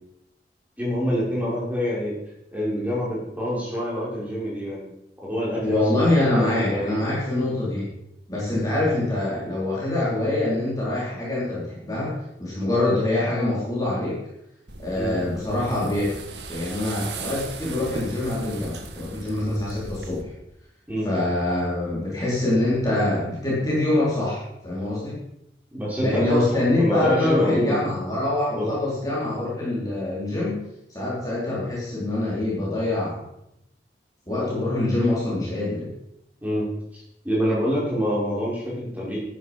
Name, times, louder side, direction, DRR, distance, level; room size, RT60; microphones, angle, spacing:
voice 1, 0.8-2.2 2.5-4.9 5.2-7.0 14.9-15.2 20.9-21.1 25.7-28.1 28.5-28.7 36.4-36.7 36.9-39.2, equal, 10° right, -6 dB, 5.5 m, -26 dB
voice 2, 5.6-7.9 8.3-14.2 14.8-16.2 16.5-20.3 21.0-25.2 26.0-30.6 30.9-33.2 34.3-35.9, left 2 dB, 20° left, -7 dB, 4.3 m, -24 dB
sound 1, 14.7-20.2, right 3 dB, 85° right, 1.7 m, -38 dB
13.0 x 10.5 x 5.4 m, 0.83 s
head